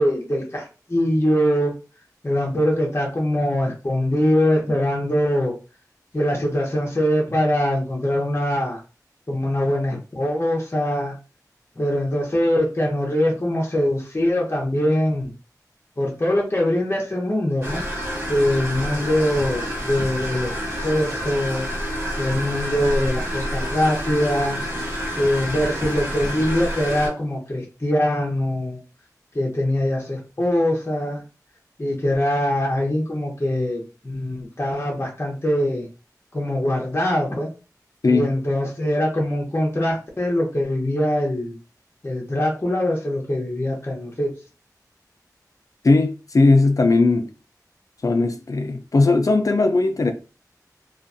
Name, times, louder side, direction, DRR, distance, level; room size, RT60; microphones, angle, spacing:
voice 1, 0.0-1.7 2.2-5.5 6.1-8.8 9.3-11.1 11.8-15.3 16.0-17.8 18.3-21.7 22.2-24.6 25.2-28.8 29.3-31.2 31.8-35.9 36.3-37.5 38.1-41.6 42.0-44.3, left 1 dB, 35° left, 0.8 m, -22 dB
sound 1, 17.6-27.1, equal, 40° right, 1.3 m, -28 dB
voice 2, 45.8-47.3 48.0-50.1, left 3 dB, 60° left, 0.4 m, -18 dB
2.4 x 2.2 x 2.5 m
wide cardioid pair, 60°, 7 cm